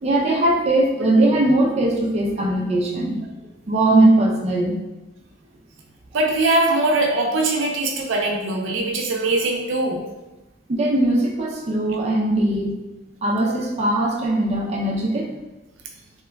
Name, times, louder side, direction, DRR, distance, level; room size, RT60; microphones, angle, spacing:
voice 1, 0.0-3.2 3.7-4.8 10.7-12.8 13.2-15.3, right 1 dB, 35° right, -2 dB, 0.4 m, -20 dB
voice 2, 6.1-10.0, right 2 dB, 85° right, 1 dB, 0.5 m, -21 dB
2.9 x 2.2 x 3.4 m, 1.0 s
head